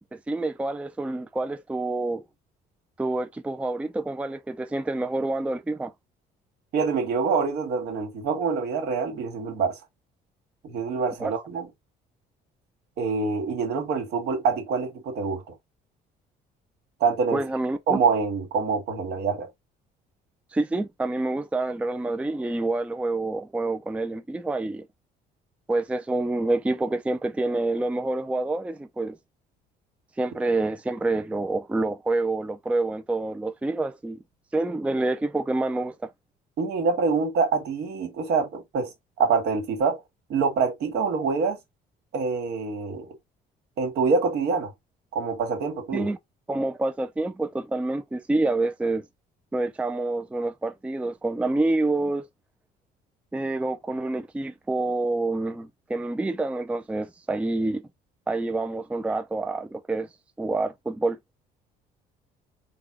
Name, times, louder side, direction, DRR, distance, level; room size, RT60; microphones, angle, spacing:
voice 1, 0.1-2.2 3.0-5.9 11.2-11.3 17.3-18.0 20.5-24.9 25.7-29.2 30.2-34.2 34.5-36.1 45.9-46.2 46.5-49.0 49.5-52.3 53.3-57.9 58.3-60.1 60.4-61.2, right 2 dB, 5° right, 0.4 m, -27 dB
voice 2, 6.7-9.8 10.6-11.7 13.0-15.4 17.0-17.4 17.9-19.5 36.6-38.9 39.2-40.0 40.3-41.6 42.1-43.1 43.8-44.7 45.1-46.1, right 5 dB, 75° right, 1.9 m, -25 dB
4.1 x 2.3 x 4.6 m
cardioid pair, 110°, 17 cm